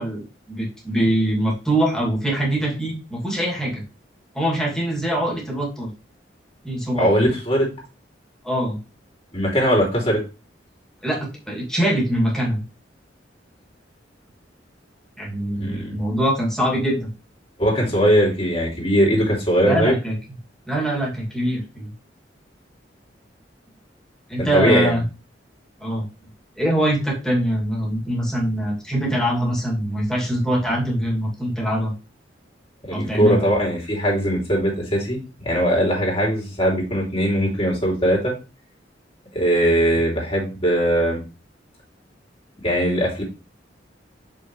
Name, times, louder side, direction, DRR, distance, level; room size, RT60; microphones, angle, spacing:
voice 1, 0.0-3.8 4.3-5.9 6.6-7.1 8.4-8.8 11.0-12.6 15.2-17.1 19.6-20.1 20.7-21.9 24.3-25.0 25.8-26.0 26.6-31.9 32.9-33.4, right 1 dB, 5° left, -3 dB, 2.5 m, -23 dB
voice 2, 6.9-7.7 9.3-10.2 15.6-16.0 17.6-19.9 24.4-25.0 32.9-38.3 39.3-41.2 42.6-43.2, equal, 35° left, -2 dB, 3.1 m, -20 dB
6.5 x 5.7 x 3.2 m, 0.31 s
head